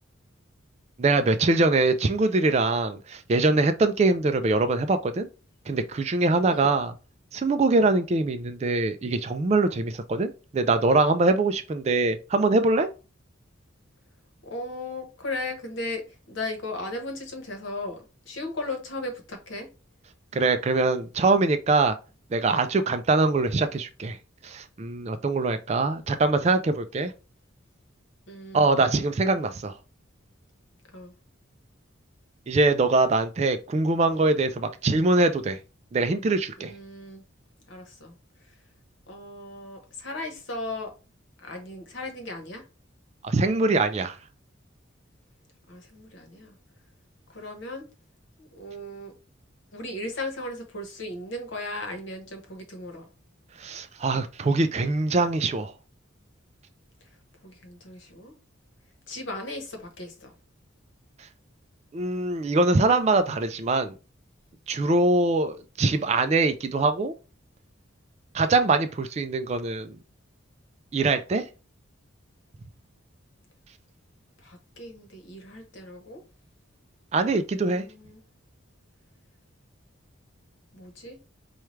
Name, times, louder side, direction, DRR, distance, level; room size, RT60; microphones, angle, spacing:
voice 1, 1.0-5.3 5.7-6.9 7.3-12.9 20.3-21.9 22.3-24.2 24.4-27.1 28.5-29.7 32.5-35.6 35.9-36.7 43.2-44.2 53.6-55.7 61.9-63.9 64.7-67.1 68.3-70.0 70.9-71.4 77.1-77.8, right 3 dB, 30° right, 0.3 m, -23 dB
voice 2, 14.5-16.0 16.3-18.0 18.3-19.7 28.3-28.7 30.9-31.1 36.6-37.2 37.7-38.1 39.1-40.9 41.4-42.6 45.7-46.5 47.3-47.9 48.4-49.1 49.7-53.0 57.4-58.3 59.1-60.3 74.4-76.2 77.6-78.2 80.7-81.2, left 2 dB, 65° left, 1.1 m, -36 dB
4.5 x 2.3 x 3.1 m
head